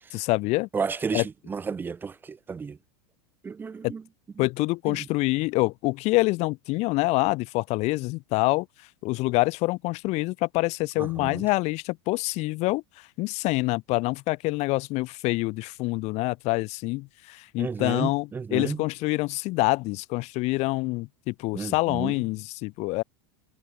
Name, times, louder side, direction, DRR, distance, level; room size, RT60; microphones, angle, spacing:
voice 1, 0.1-0.7 1.1-1.2 3.8-3.9 4.4-8.7 9.0-23.0, left 22 dB, 50° left, 0.5 m, -26 dB
voice 2, 0.7-2.8 3.4-4.0 4.9-5.0 11.0-11.4 17.6-18.8 21.5-22.1, right 5 dB, 15° right, 0.3 m, -32 dB
supercardioid pair, 115°, 15 cm